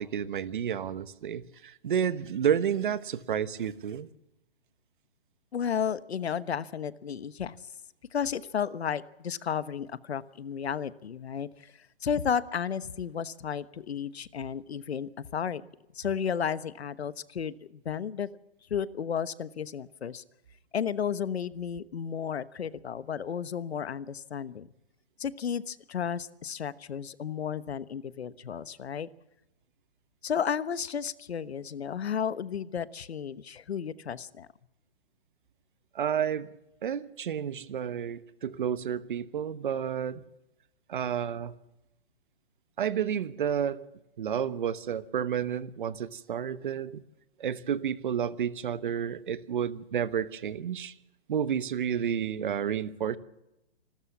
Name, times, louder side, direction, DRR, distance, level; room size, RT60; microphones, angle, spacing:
voice 1, 0.0-4.1 35.9-36.5 36.8-40.2 40.9-41.5 42.8-43.8 44.2-47.0 47.4-50.9 51.3-53.2, right 8 dB, 50° right, 16 dB, 1.1 m, -30 dB
voice 2, 5.5-7.6 8.1-15.6 15.9-18.3 18.7-20.2 20.7-24.7 25.2-29.1 30.2-34.5, left 7 dB, 80° left, 16 dB, 1.2 m, -33 dB
26.5 x 13.5 x 7.3 m, 0.91 s
hypercardioid pair, 165°, 31 cm